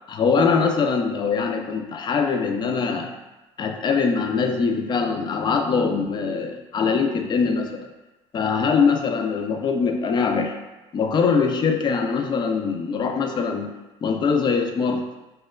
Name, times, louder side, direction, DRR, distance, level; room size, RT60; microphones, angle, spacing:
voice 1, 0.1-3.1 3.6-7.9 8.3-10.6 10.9-13.7 14.0-15.0, left 5 dB, 30° left, 5 dB, 0.4 m, -22 dB
3.0 x 2.1 x 2.3 m, 1.1 s
hypercardioid pair, 80°, 14 cm